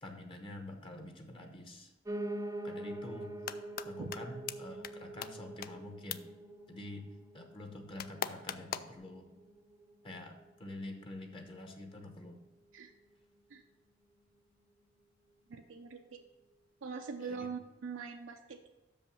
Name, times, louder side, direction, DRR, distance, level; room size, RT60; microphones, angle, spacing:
voice 1, 0.0-1.9 2.6-3.3 3.8-6.3 6.7-7.1 7.3-9.3 10.0-12.4 17.2-17.5, left 1 dB, 25° left, 5 dB, 0.9 m, -47 dB
Piano, 2.1-11.2 11.6-12.7 13.0-13.1 13.3-13.4 13.7-13.8 14.3-14.4, right 1 dB, 15° right, 0.6 m, -45 dB
sound 1, 3.2-3.9 4.1-4.2 4.5-4.6 4.8-4.9 5.2-5.3 5.6-5.7 6.1-6.2 8.0-9.0, left 9 dB, 50° left, 0.4 m, -37 dB
sound 2, 3.4-7.6, left 6 dB, 65° left, 1.1 m, -66 dB
voice 2, 15.5-16.2 16.8-18.7, right 5 dB, 80° right, 3 dB, 0.6 m, -43 dB
6.4 x 5.3 x 6.9 m, 1.1 s
head